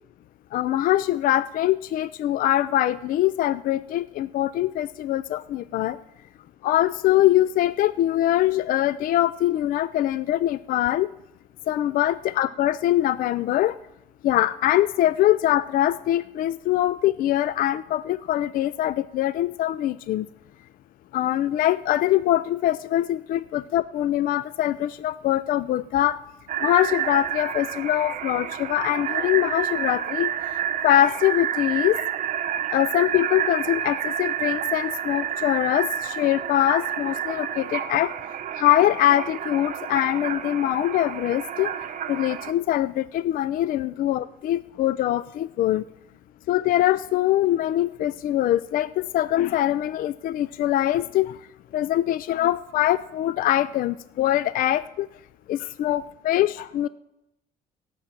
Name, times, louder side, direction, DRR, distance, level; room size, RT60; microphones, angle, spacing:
voice 1, 0.5-6.0 6.6-11.1 11.7-13.8 14.2-20.3 21.1-26.2 26.6-30.3 30.8-32.0 32.7-38.1 38.6-41.7 42.1-45.8 46.5-51.4 51.7-55.1 55.5-56.9, left 13 dB, 55° left, 17 dB, 0.4 m, -23 dB
sound 1, 26.5-42.5, right 9 dB, 50° right, 0.8 m, -29 dB
16.5 x 5.9 x 7.5 m, 0.88 s
cardioid pair, 110°, 17 cm